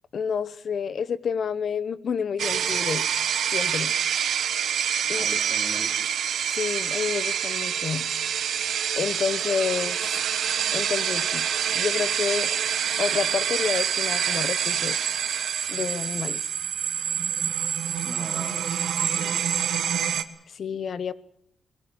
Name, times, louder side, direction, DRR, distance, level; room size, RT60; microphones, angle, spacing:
voice 1, 0.1-3.1 3.5-3.9 5.1-5.3 6.5-8.1 9.0-10.1 10.7-11.5 11.7-12.5 13.0-15.0 15.7-16.5 20.5-21.1, left 6 dB, 55° left, 16 dB, 0.9 m, -29 dB
sound 1, 2.4-20.2, right 9 dB, 85° right, 1.4 m, -26 dB
voice 2, 5.1-6.1 18.0-19.4, right 3 dB, 30° right, 1 dB, 3.5 m, -42 dB
21.5 x 20.5 x 7.8 m, 0.72 s
wide cardioid pair, 135°, 0 cm